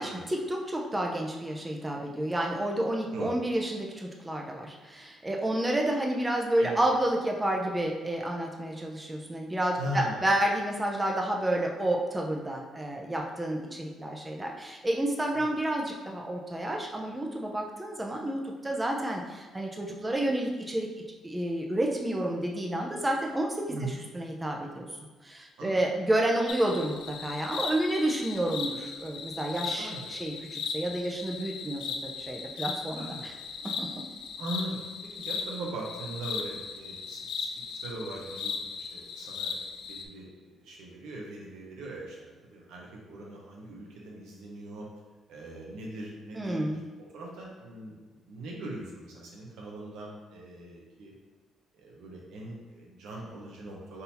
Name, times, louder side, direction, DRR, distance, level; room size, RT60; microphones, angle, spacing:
voice 1, 0.3-20.9 21.2-24.9 25.2-33.3 33.6-34.0 46.3-46.8, right 1 dB, 15° right, 0 dB, 0.6 m, -30 dB
voice 2, 9.8-10.2 15.3-15.5 23.7-24.0 25.6-25.7 29.6-30.0 33.0-33.3 34.4-34.8 35.1-44.9 45.3-51.1 51.7-54.0, right 1 dB, 85° right, -2 dB, 0.9 m, -40 dB
sound 1, 26.5-40.0, left 5 dB, 85° left, 0.4 m, -37 dB
3.9 x 2.7 x 4.2 m, 1.4 s
cardioid pair, 90°, 0 cm